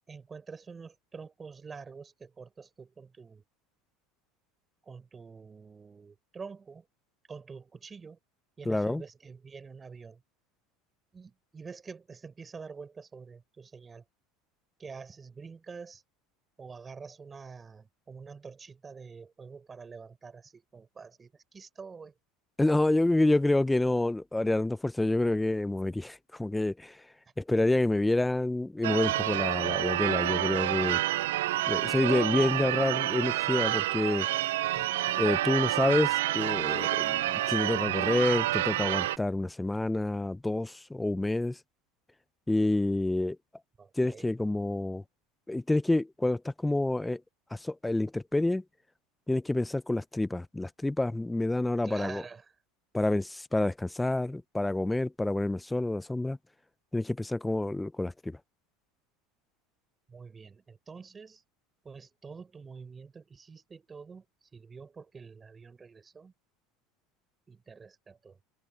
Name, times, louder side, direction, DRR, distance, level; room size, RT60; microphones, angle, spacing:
voice 1, 0.1-3.4 4.8-6.9 7.3-8.2 8.6-10.2 11.1-14.0 14.8-16.0 16.6-22.1 34.7-35.2 43.8-44.3 51.8-52.5 60.1-61.4 61.8-66.3 67.5-68.4, right 5 dB, 25° right, 7.0 m, -47 dB
voice 2, 8.7-9.0 22.6-27.0 27.4-31.0 31.7-34.3 35.2-41.6 42.5-43.4 44.0-45.0 45.5-47.2 47.5-48.6 49.3-52.2 52.9-56.4 56.9-58.4, left 2 dB, 10° left, 0.6 m, -28 dB
Church bell / Car / Alarm, 28.8-39.2, right 15 dB, 85° right, 0.5 m, -29 dB
supercardioid pair, 95°, 0 cm